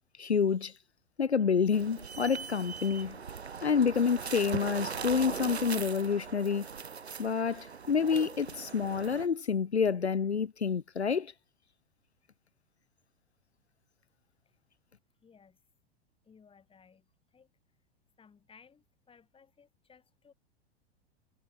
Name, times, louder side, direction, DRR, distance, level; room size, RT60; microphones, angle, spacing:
voice 1, 0.2-0.7 1.2-3.2 3.6-6.7 7.2-11.3, left 6 dB, 85° left, 0.9 m, -28 dB
sound 1, 1.7-9.3, right 6 dB, 80° right, 1.6 m, -40 dB
voice 2, 15.2-15.6 16.2-17.5 18.2-20.3, left 6 dB, 15° left, 7.4 m, -60 dB
figure-of-eight pair, 95°, 32 cm